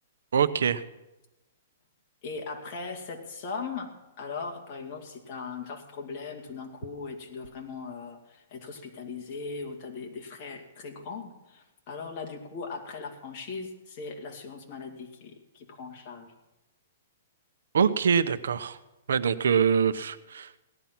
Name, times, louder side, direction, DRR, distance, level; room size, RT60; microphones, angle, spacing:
voice 1, 0.3-0.8 17.7-18.8 19.1-20.6, right 7 dB, 80° right, 13 dB, 0.8 m, -24 dB
voice 2, 2.2-16.3, left 4 dB, 35° left, 1 dB, 2.3 m, -39 dB
17.5 x 11.0 x 5.9 m, 0.99 s
hypercardioid pair, 165°, 0 cm